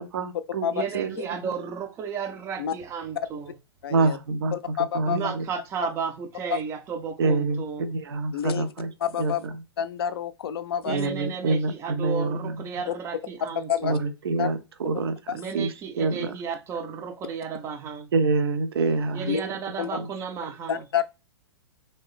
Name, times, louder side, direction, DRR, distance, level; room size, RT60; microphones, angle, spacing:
voice 1, 0.0-0.7 0.9-1.5 3.9-5.5 7.2-8.9 9.2-9.6 10.9-12.7 13.8-16.3 18.1-19.6 19.9-20.1, right 3 dB, 60° right, 0.6 m, -27 dB
voice 2, 0.7-3.5 5.1-7.9 10.9-14.0 15.3-18.1 19.1-20.8, right 6 dB, 20° right, 0.4 m, -33 dB
voice 3, 3.8-4.2 4.5-5.2 8.3-8.7 9.0-9.4 9.8-11.0 12.9-13.0 13.6-14.0 14.4-14.5 15.3-15.4 19.3-19.4 19.8-19.9 20.7-21.0, left 9 dB, 60° left, 0.4 m, -28 dB
3.1 x 2.7 x 3.4 m
figure-of-eight pair, 110°, 14 cm